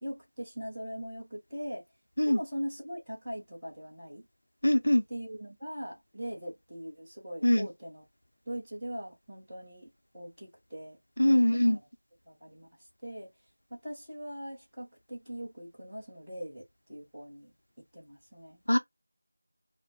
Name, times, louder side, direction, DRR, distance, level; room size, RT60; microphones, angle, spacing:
voice 1, 0.0-1.8 2.2-4.3 5.1-8.0 8.4-11.0 11.3-11.9 12.2-12.7 13.0-13.3 13.7-16.6 16.9-18.6, equal, ahead, 1.1 m, -41 dB
voice 2, 4.6-5.0 7.4-7.7 11.2-11.8 18.7-18.8, left 1 dB, 80° left, 0.7 m, -23 dB
2.4 x 2.1 x 3.3 m
figure-of-eight pair, 180°, 0 cm